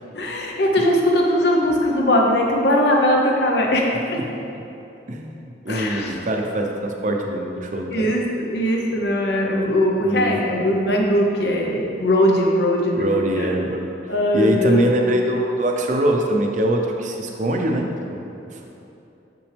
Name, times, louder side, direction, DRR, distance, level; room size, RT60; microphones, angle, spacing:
voice 1, 0.1-4.3 5.7-6.2 7.9-13.5 14.1-14.8, left 1 dB, 65° left, 0 dB, 0.8 m, -20 dB
voice 2, 5.1-8.1 10.0-10.4 12.9-18.7, right 1 dB, 45° right, 2 dB, 0.6 m, -23 dB
6.1 x 6.0 x 3.3 m, 2.8 s
head